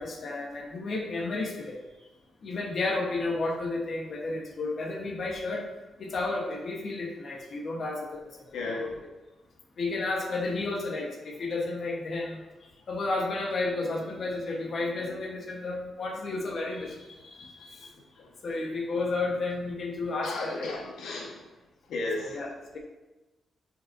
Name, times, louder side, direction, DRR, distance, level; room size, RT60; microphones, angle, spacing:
voice 1, 0.0-1.8 2.4-5.7 6.0-8.1 8.8-8.9 9.8-12.4 12.9-17.9 18.4-20.7 22.2-22.8, left 3 dB, 45° left, 0 dB, 1.1 m, -32 dB
voice 2, 8.5-8.9 17.9-18.3 20.2-21.4 21.9-22.4, left 2 dB, 90° left, -1 dB, 1.3 m, -34 dB
10.5 x 5.1 x 2.6 m, 1.1 s
cardioid pair, 135°, 0 cm